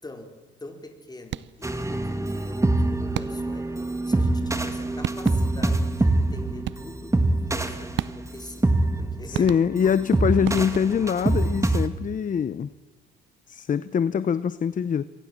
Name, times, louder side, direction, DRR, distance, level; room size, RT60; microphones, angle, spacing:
voice 1, 0.0-3.7 4.1-7.2 7.5-9.6 10.3-11.0, left 2 dB, 20° left, 5 dB, 4.7 m, -44 dB
sound 1, 1.2-1.7 3.1-3.7 4.7-4.8 5.0-5.7 6.6-7.1 8.0-8.5 9.3-10.0 10.4-11.1, right 12 dB, 70° right, 0.7 m, -34 dB
sound 2, 1.6-11.9, right 2 dB, 15° right, 2.1 m, -25 dB
voice 2, 9.3-12.7 13.5-15.1, left 7 dB, 40° left, 15 dB, 0.8 m, -24 dB
27.5 x 24.0 x 7.6 m, 1.2 s
cardioid pair, 90°, 20 cm